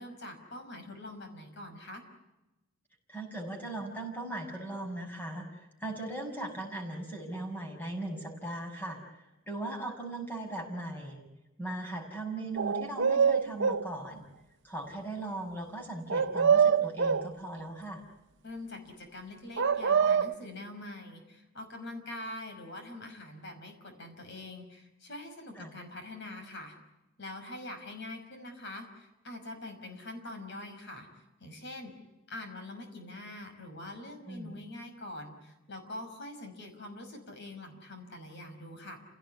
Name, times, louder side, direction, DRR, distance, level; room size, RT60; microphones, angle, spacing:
voice 1, 0.0-2.0 18.4-26.7 27.2-31.9 32.3-39.0, left 1 dB, 55° left, 6 dB, 5.6 m, -44 dB
voice 2, 3.1-11.2 11.6-14.2 14.6-18.0 25.6-25.7 34.3-34.5, right 2 dB, 10° left, 2 dB, 6.3 m, -38 dB
sound 1, 12.6-13.9 16.1-17.3 19.6-20.3, right 6 dB, 60° right, 0.9 m, -25 dB
29.5 x 17.5 x 9.7 m, 1.0 s
head